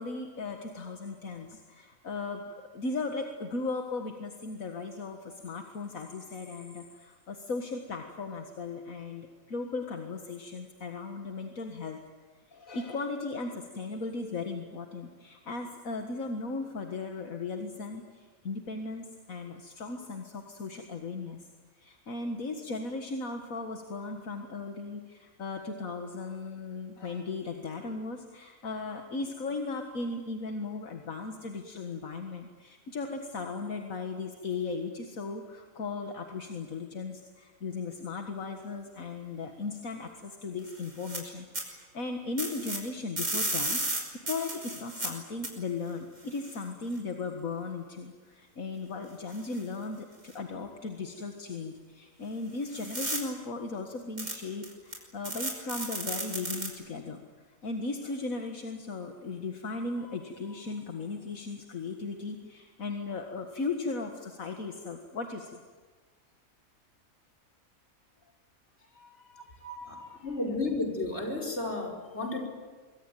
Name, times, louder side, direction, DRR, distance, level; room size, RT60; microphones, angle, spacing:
voice 1, 0.0-12.1 12.5-21.4 21.8-57.2 57.6-65.6 68.8-70.6, left 3 dB, 75° left, 4 dB, 2.2 m, -37 dB
sound 1, 40.7-41.2 41.5-41.6 42.4-42.8 43.2-45.1 45.4-45.5 46.4-46.5 49.3-49.6 50.3-50.4 52.7-53.2 54.2-54.3 54.6-54.9 55.2-56.7, right 2 dB, 80° right, 6.0 m, -33 dB
voice 2, 69.6-70.0 70.2-72.5, left 2 dB, 50° left, 4 dB, 5.3 m, -32 dB
25.5 x 23.5 x 9.3 m, 1.4 s
omnidirectional pair, 1.5 m